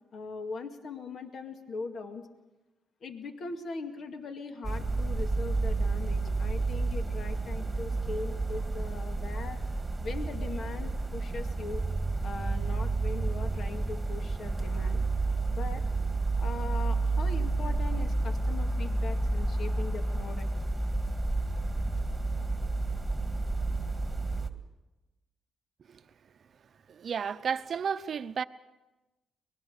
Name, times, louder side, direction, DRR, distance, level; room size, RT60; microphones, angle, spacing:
voice 1, 0.1-2.2 3.0-9.6 10.0-11.8 12.2-15.0 15.5-15.8 16.4-20.5, left 4 dB, 55° left, 2.1 m, -40 dB
sound 1, 4.6-24.5, right 3 dB, 10° right, 1.9 m, -30 dB
voice 2, 26.9-28.4, right 6 dB, 50° right, 0.8 m, -32 dB
24.0 x 20.5 x 6.7 m
cardioid pair, 90°, 0 cm